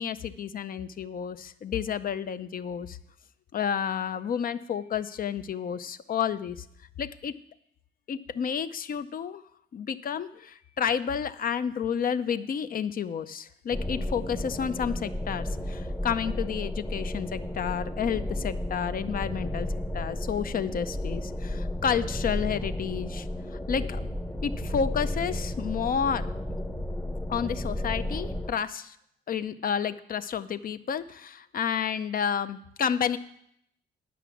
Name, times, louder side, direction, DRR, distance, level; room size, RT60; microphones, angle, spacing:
voice 1, 0.0-3.0 3.5-6.7 7.0-7.3 8.1-9.4 9.7-19.7 19.9-23.3 23.7-24.1 24.4-26.3 27.3-29.0 29.3-33.2, left 7 dB, 45° left, 13 dB, 0.6 m, -30 dB
sound 1, 13.7-28.5, left 1 dB, 10° left, 0.8 m, -33 dB
10.0 x 6.0 x 7.1 m, 0.73 s
cardioid pair, 90°, 20 cm